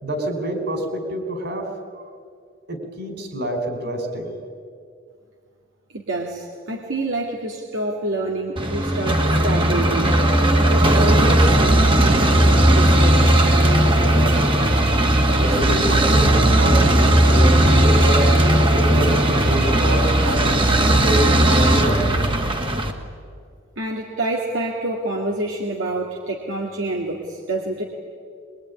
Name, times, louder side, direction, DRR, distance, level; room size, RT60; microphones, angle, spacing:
voice 1, 0.0-1.7 2.7-4.3 15.3-18.3 18.7-22.1, right 1 dB, 55° right, 5 dB, 5.0 m, -26 dB
voice 2, 5.9-10.2 10.7-13.3 23.8-27.8, right 2 dB, 75° right, -1 dB, 2.5 m, -27 dB
sound 1, 8.6-22.9, right 1 dB, 25° right, 1.9 m, -16 dB
23.5 x 23.0 x 9.8 m, 2.2 s
head